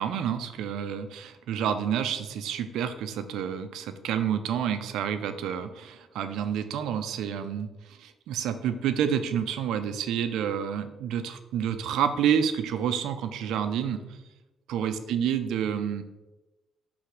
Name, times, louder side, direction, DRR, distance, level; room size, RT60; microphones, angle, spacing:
voice 1, 0.0-14.2 14.7-16.0, right 8 dB, 85° right, 10 dB, 0.5 m, -29 dB
6.3 x 3.4 x 4.8 m, 1.1 s
cardioid pair, 90°, 0 cm